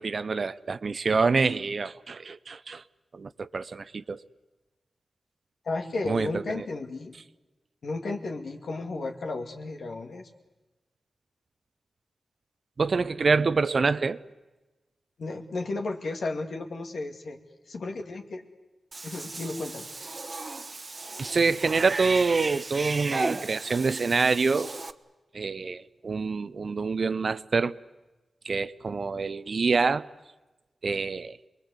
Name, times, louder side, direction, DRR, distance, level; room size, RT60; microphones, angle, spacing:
voice 1, 0.0-2.8 3.1-4.2 6.0-6.7 12.8-14.2 21.2-24.7 25.3-27.7 28.4-30.1 30.8-31.4, right 4 dB, 60° right, 0.8 m, -26 dB
voice 2, 5.6-7.1 7.8-10.3 15.2-17.4 17.7-18.4 19.0-19.9, left 3 dB, 80° left, 2.6 m, -33 dB
Cat / Bathtub (filling or washing), 18.9-24.9, right 3 dB, 40° right, 1.2 m, -35 dB
27.5 x 21.5 x 8.3 m
cardioid pair, 70°, 0 cm